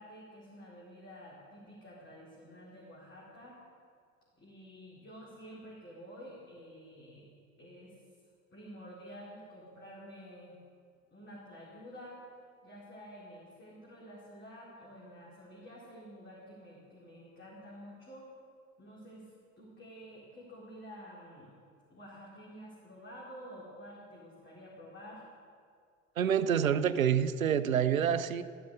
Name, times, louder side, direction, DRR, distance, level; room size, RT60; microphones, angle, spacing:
voice 1, 0.0-3.6 4.4-7.3 7.6-8.0 8.5-10.6 11.1-12.2 12.6-18.3 18.8-19.3 19.6-21.5 21.9-25.3, equal, 30° left, -5 dB, 4.4 m, -50 dB
voice 2, 26.2-28.4, right 8 dB, 80° right, 14 dB, 0.7 m, -27 dB
15.5 x 12.5 x 6.7 m, 2.2 s
figure-of-eight pair, 65°, 40 cm